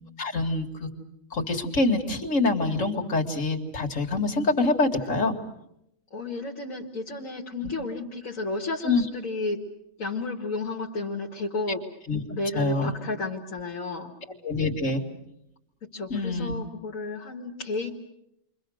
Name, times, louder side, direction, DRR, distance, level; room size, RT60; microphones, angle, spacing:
voice 1, 0.2-0.9 1.3-5.4 8.8-9.0 12.1-12.2 12.5-13.0 14.4-15.0 16.1-16.5, left 2 dB, 70° left, 3 dB, 2.7 m, -25 dB
voice 2, 6.1-9.6 10.0-11.9 12.3-14.1 15.8-17.9, left 2 dB, 85° left, -1 dB, 2.3 m, -32 dB
29.5 x 24.5 x 6.4 m, 0.78 s
omnidirectional pair, 1.4 m